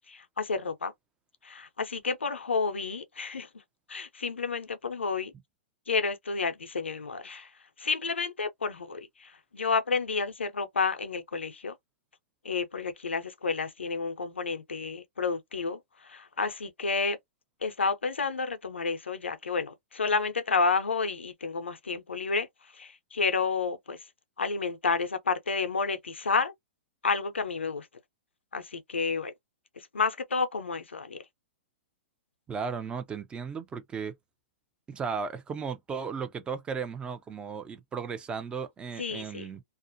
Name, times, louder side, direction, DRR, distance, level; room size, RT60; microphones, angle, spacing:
voice 1, 0.1-0.9 1.4-3.5 3.9-5.3 5.9-7.5 7.8-11.7 12.4-17.2 17.6-22.5 22.7-24.0 24.4-26.5 27.0-27.9 28.5-29.3 29.8-31.2 39.0-39.5, left 4 dB, 90° left, 0.6 m, -30 dB
voice 2, 32.5-34.1 34.9-39.6, right 5 dB, 15° right, 0.5 m, -35 dB
2.4 x 2.1 x 2.5 m
hypercardioid pair, 120°, 6 cm